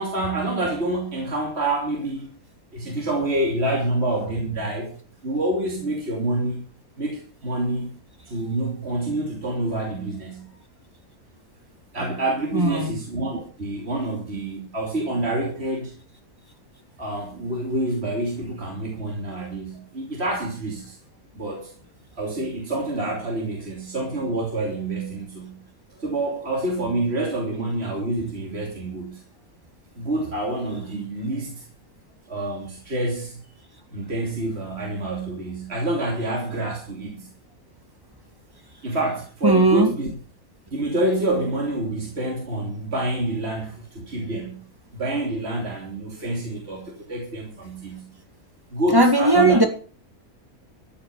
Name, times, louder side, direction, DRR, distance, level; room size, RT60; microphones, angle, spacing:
voice 1, 0.0-2.3 2.7-4.9 5.2-6.6 7.0-7.9 8.3-10.6 11.9-15.9 17.0-21.0 21.3-21.7 22.2-25.6 26.0-29.2 30.0-31.6 32.3-33.4 33.9-37.3 38.8-40.1 40.7-44.6 44.9-48.1 48.7-49.6, right 2 dB, 45° right, -1 dB, 3.3 m, -27 dB
voice 2, 12.5-13.0 39.4-39.9 48.9-49.7, right 2 dB, 15° right, 6 dB, 2.2 m, -17 dB
14.0 x 9.0 x 6.9 m, 0.40 s
omnidirectional pair, 1.5 m